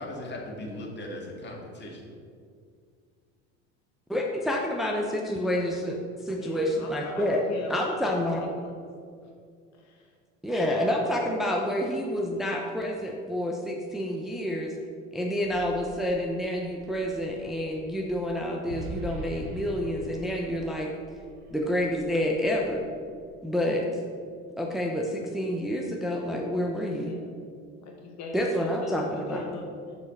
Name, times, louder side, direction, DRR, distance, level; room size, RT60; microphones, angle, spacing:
voice 1, 0.0-2.1, left 1 dB, 30° left, 0 dB, 2.0 m, -38 dB
voice 2, 4.1-7.4 7.7-8.4 10.4-14.7 15.1-20.9 21.5-22.9 23.4-23.9 24.6-27.1 28.3-29.4, equal, ahead, -1 dB, 0.8 m, -28 dB
voice 3, 6.3-8.7 9.2-9.3 9.7-10.1 27.0-27.3 27.8-29.9, left 3 dB, 50° left, 1 dB, 1.1 m, -41 dB
sound 1, 15.2-23.4, right 2 dB, 70° right, 1.1 m, -44 dB
6.6 x 5.1 x 6.6 m, 2.2 s
hypercardioid pair, 85°, 35 cm